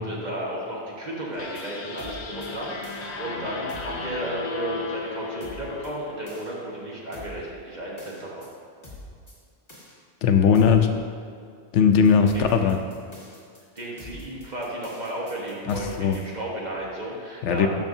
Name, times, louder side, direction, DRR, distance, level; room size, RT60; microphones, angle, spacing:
voice 1, 0.0-8.5 12.3-12.5 13.7-17.7, right 1 dB, 40° right, -4 dB, 1.5 m, -33 dB
sound 1, 1.3-1.6 2.0-2.5 2.8-3.1 3.7-4.0 5.4-5.9 6.3-6.5 7.1-7.4 8.0-8.5 8.8-9.3 9.7-9.9 10.5-10.9 12.0-16.2, left 1 dB, 25° left, 1.7 m, -44 dB
sound 2, 1.4-6.7, left 4 dB, 45° left, 0.6 m, -36 dB
voice 2, 10.2-10.9 11.7-12.8 15.7-16.2 17.4-17.7, left 6 dB, 90° left, 6 dB, 0.9 m, -19 dB
12.5 x 5.6 x 2.7 m, 2.3 s
omnidirectional pair, 1.2 m